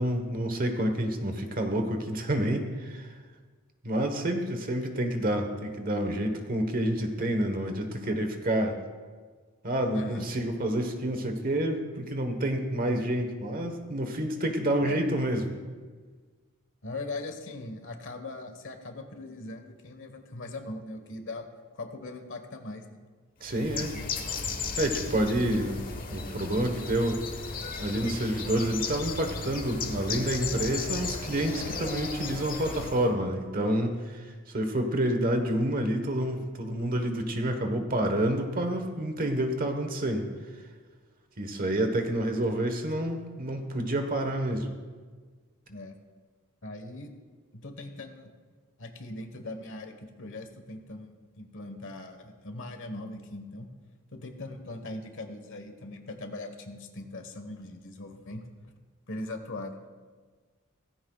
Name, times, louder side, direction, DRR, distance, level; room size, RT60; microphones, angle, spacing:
voice 1, 0.0-3.1 3.8-8.8 9.6-15.5 23.4-24.0 24.8-25.8 26.1-27.2 27.8-40.3 41.4-44.7, right 1 dB, 40° right, 5 dB, 1.2 m, -28 dB
voice 2, 9.9-10.3 14.8-15.0 16.8-21.5 21.7-23.0 23.7-24.1 24.3-24.6 45.7-45.9 46.6-47.1 47.5-48.3 48.8-53.7 54.1-58.5 59.1-59.8, left 2 dB, 60° left, 6 dB, 1.3 m, -40 dB
Bird, 23.4-33.1, left 4 dB, 40° left, 1.3 m, -35 dB
17.0 x 15.0 x 2.4 m, 1.5 s
head